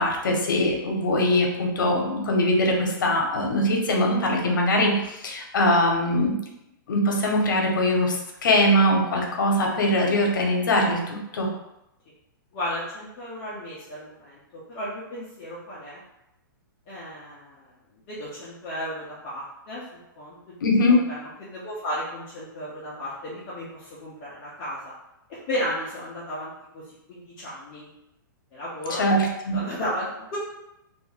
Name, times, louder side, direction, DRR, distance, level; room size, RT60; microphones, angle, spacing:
voice 1, 0.0-6.4 6.9-11.5 20.6-21.0 28.9-29.6, left 1 dB, 65° left, 1 dB, 0.7 m, -22 dB
voice 2, 12.5-16.0 16.9-17.7 18.1-19.8 20.2-20.6 21.1-24.9 25.5-26.8 27.1-27.9 28.5-29.0 29.5-30.4, equal, 15° left, -9 dB, 0.4 m, -34 dB
2.6 x 2.2 x 3.1 m, 0.88 s
hypercardioid pair, 180°, 12 cm